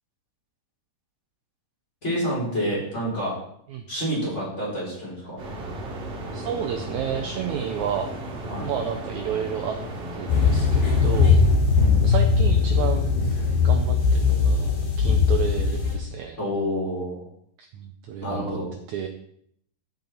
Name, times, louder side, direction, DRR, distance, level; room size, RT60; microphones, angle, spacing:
voice 1, 2.0-3.4 3.9-5.4 8.5-8.7 11.7-12.0 16.4-17.3 18.2-18.7, equal, 15° left, -6 dB, 5.3 m, -28 dB
sound 1, 5.4-11.2, right 2 dB, 60° right, 3.8 m, -35 dB
voice 2, 6.3-8.1 8.6-9.8 10.1-11.4 12.0-13.1 13.6-16.4 17.6-18.6 18.9-19.1, right 8 dB, 90° right, 6 dB, 1.6 m, -31 dB
sound 2, 10.3-16.0, left 5 dB, 90° left, 5.8 m, -20 dB
14.0 x 7.9 x 4.4 m, 0.68 s
omnidirectional pair, 4.4 m